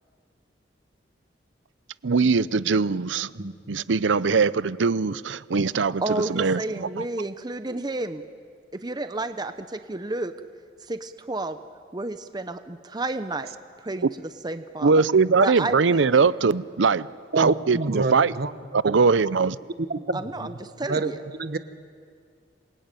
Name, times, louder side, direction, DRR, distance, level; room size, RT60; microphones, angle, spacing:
voice 1, 2.0-3.3 3.7-7.0 14.8-17.1 17.4-18.3 18.7-19.6, right 4 dB, 90° right, 18 dB, 0.6 m, -21 dB
voice 2, 6.0-8.2 8.7-10.3 10.8-11.6 11.9-13.5 13.8-15.0 15.4-16.4 20.1-21.2, right 2 dB, 25° right, 9 dB, 0.9 m, -31 dB
voice 3, 17.3-18.5 19.9-20.5 20.9-21.1 21.4-21.6, right 3 dB, 60° right, 10 dB, 1.3 m, -28 dB
27.5 x 22.0 x 9.1 m, 2.1 s
head